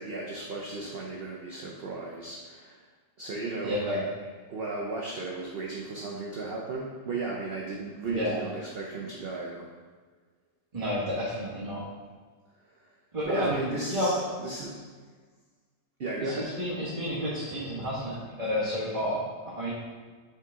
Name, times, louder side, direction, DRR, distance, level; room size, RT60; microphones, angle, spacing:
voice 1, 0.0-2.8 3.2-4.0 4.5-9.6 13.2-14.1 14.4-14.9 16.0-16.5, right 3 dB, 60° right, -2 dB, 0.6 m, -35 dB
voice 2, 3.6-4.0 8.0-8.4 10.7-11.8 13.1-13.6 13.9-14.3 16.2-19.7, equal, 25° right, -10 dB, 1.2 m, -30 dB
5.6 x 4.8 x 3.6 m, 1.5 s
omnidirectional pair, 1.8 m